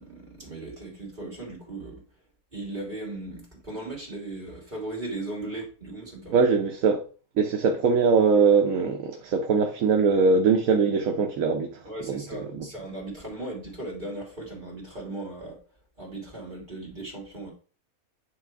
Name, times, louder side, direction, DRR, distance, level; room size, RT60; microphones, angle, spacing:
voice 1, 0.0-2.0 2.5-6.4 11.8-15.6 16.0-17.5, right 2 dB, 35° right, 3.0 m, -37 dB
voice 2, 6.3-7.0 7.4-11.8 12.1-12.7, right 5 dB, 75° right, 1.2 m, -22 dB
9.4 x 3.5 x 4.6 m
omnidirectional pair, 1.5 m